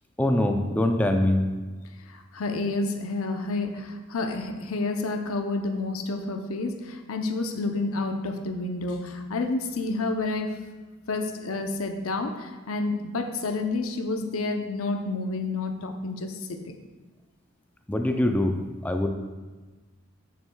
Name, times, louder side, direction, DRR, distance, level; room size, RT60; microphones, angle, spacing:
voice 1, 0.2-1.4 17.9-18.6 18.8-19.1, left 1 dB, 5° left, 4 dB, 0.4 m, -23 dB
voice 2, 2.0-10.6 11.1-16.7, left 3 dB, 80° left, 6 dB, 0.7 m, -29 dB
10.5 x 6.5 x 2.3 m, 1.3 s
head